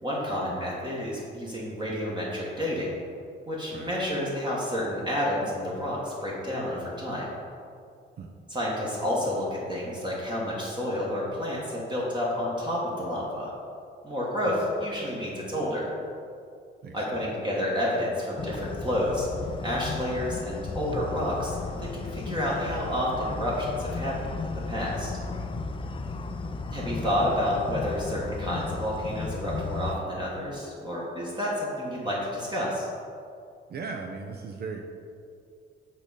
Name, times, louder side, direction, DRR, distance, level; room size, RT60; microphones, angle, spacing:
voice 1, 0.0-2.9 3.5-7.3 8.5-13.5 14.0-15.9 16.9-19.3 19.6-25.1 26.7-32.9, left 1 dB, 20° right, -5 dB, 1.4 m, -30 dB
voice 2, 16.8-17.2 33.7-34.8, right 4 dB, 55° right, 2 dB, 0.6 m, -38 dB
sound 1, 18.4-30.0, left 4 dB, 25° left, 0.4 m, -34 dB
8.0 x 3.7 x 4.1 m, 2.4 s
cardioid pair, 90°, 20 cm